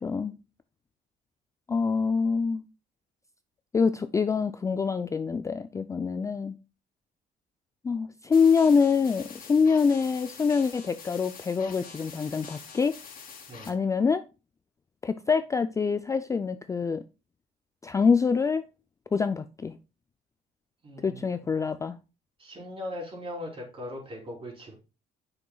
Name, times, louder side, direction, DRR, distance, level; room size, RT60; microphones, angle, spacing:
voice 1, 0.0-0.3 1.7-2.6 3.7-6.6 7.8-12.9 13.7-14.2 15.0-17.0 17.8-18.6 19.1-19.7 21.0-22.0, left 5 dB, 20° left, 0.3 m, -25 dB
sound 1, 8.3-13.7, left 6 dB, 55° left, 2.5 m, -45 dB
voice 2, 20.8-21.2 22.4-24.7, left 1 dB, 30° right, 3.4 m, -39 dB
8.6 x 6.1 x 2.3 m
cardioid pair, 110°, 17 cm